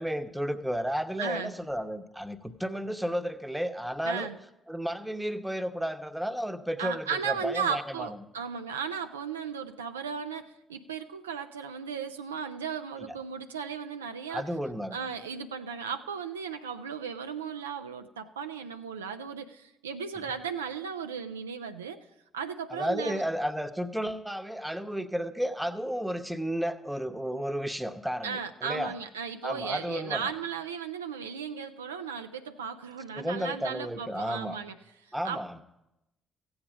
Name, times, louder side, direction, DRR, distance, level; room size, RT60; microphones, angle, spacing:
voice 1, 0.0-4.3 4.7-8.2 14.3-15.0 22.7-28.9 29.4-30.3 33.2-34.6 35.1-35.6, equal, 5° right, 10 dB, 0.9 m, -32 dB
voice 2, 1.2-1.5 4.0-4.4 6.8-14.4 14.9-22.0 22.3-23.2 28.2-34.7 35.2-35.4, right 6 dB, 85° right, 8 dB, 0.4 m, -36 dB
15.0 x 7.9 x 5.0 m, 0.91 s
figure-of-eight pair, 45°, 0 cm